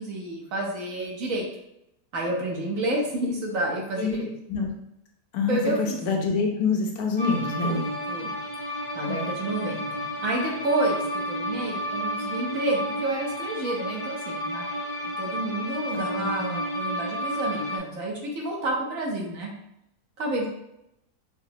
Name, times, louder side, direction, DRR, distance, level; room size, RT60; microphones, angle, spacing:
voice 1, 0.0-1.4 2.1-4.3 5.5-6.0 7.6-8.3 8.9-14.6 15.0-19.5 20.2-20.5, right 2 dB, 65° right, -1 dB, 1.1 m, -29 dB
voice 2, 5.3-7.9 9.1-9.3 16.2-16.6, left 4 dB, 80° left, 1 dB, 1.2 m, -26 dB
sound 1, 7.2-17.8, equal, 45° left, 0.4 m, -31 dB
4.9 x 2.0 x 2.7 m, 0.79 s
omnidirectional pair, 1.7 m